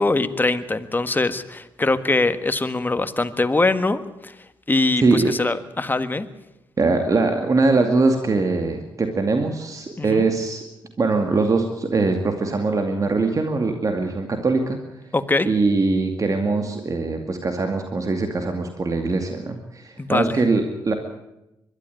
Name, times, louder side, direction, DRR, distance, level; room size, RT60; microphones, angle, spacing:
voice 1, 0.0-4.3 4.7-6.3 10.0-10.2 15.1-15.5 20.0-20.4, left 2 dB, 20° left, 10 dB, 1.6 m, -22 dB
voice 2, 5.0-5.5 6.8-10.6 11.0-14.8 15.5-20.9, right 3 dB, 40° right, 5 dB, 2.3 m, -22 dB
22.0 x 13.0 x 9.4 m, 0.93 s
supercardioid pair, 60°, 8 cm